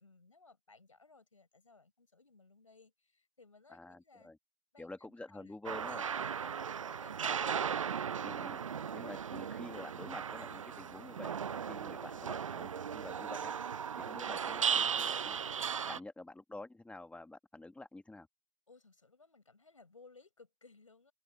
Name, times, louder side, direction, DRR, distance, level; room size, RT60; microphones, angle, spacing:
voice 1, 0.0-4.3 4.7-5.6 6.3-8.0 9.3-9.4 18.7-21.1, left 3 dB, 90° left, 5.7 m, -61 dB
voice 2, 3.7-4.4 4.8-6.1 8.2-8.6 8.9-13.5 14.0-15.3 15.9-18.3, left 2 dB, 10° left, 1.5 m, -49 dB
sound 1, 5.6-16.0, right 7 dB, 85° right, 0.4 m, -37 dB
open air
figure-of-eight pair, 80°, 16 cm